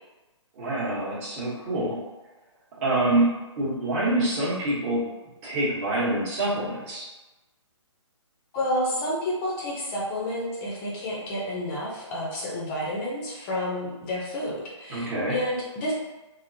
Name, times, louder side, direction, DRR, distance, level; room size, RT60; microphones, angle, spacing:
voice 1, 0.5-2.0 2.8-3.3 3.6-5.0 5.4-7.0 14.9-15.3, right 1 dB, 25° right, -8 dB, 1.0 m, -26 dB
voice 2, 8.5-15.9, left 1 dB, 25° left, -5 dB, 0.6 m, -30 dB
3.5 x 2.0 x 2.6 m, 1.1 s
figure-of-eight pair, 140°, 16 cm